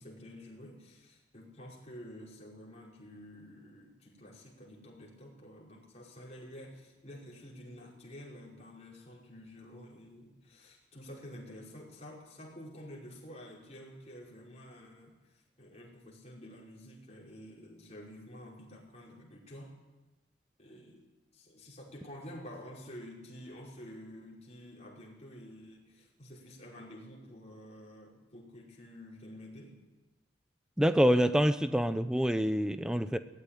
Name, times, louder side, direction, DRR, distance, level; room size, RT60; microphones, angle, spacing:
voice 1, 0.0-19.7 20.6-29.8, equal, 35° left, -3 dB, 5.1 m, -50 dB
voice 2, 30.8-33.2, equal, 5° right, 11 dB, 0.7 m, -26 dB
18.0 x 14.5 x 10.0 m, 1.1 s
head